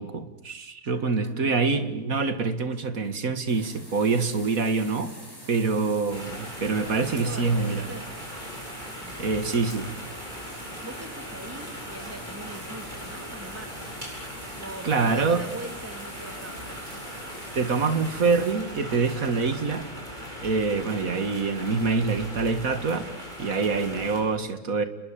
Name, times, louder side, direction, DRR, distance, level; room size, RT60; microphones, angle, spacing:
voice 1, 0.0-5.1 5.5-7.8 9.2-9.9 14.8-15.4 17.5-19.9 20.4-23.1 23.4-24.8, right 4 dB, 80° right, 11 dB, 2.4 m, -25 dB
voice 2, 0.9-1.7 6.7-8.1 9.0-9.5 10.8-14.0 14.6-16.8, right 1 dB, 10° right, 6 dB, 3.0 m, -42 dB
sound 1, 3.5-18.5, equal, 15° left, 6.4 m, -45 dB
sound 2, 6.1-24.2, equal, 35° right, 8.2 m, -39 dB
29.0 x 21.5 x 8.8 m, 0.93 s
omnidirectional pair, 1.4 m